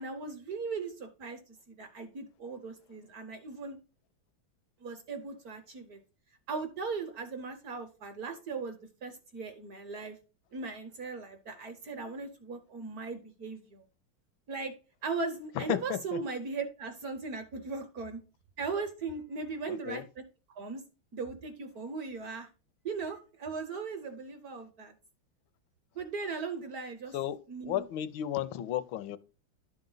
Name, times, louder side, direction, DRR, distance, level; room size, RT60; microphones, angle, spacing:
voice 1, 0.0-3.8 4.8-6.0 6.5-10.2 10.5-13.8 14.5-14.7 15.0-18.2 18.6-20.0 20.6-20.8 21.1-22.5 22.8-24.9 26.0-27.1 27.5-27.8, right 4 dB, 60° right, 1.1 m, -38 dB
voice 2, 15.6-16.2 19.7-20.0 27.1-27.4 27.6-29.2, left 11 dB, 80° left, 1.3 m, -33 dB
11.0 x 3.9 x 3.8 m
omnidirectional pair, 2.3 m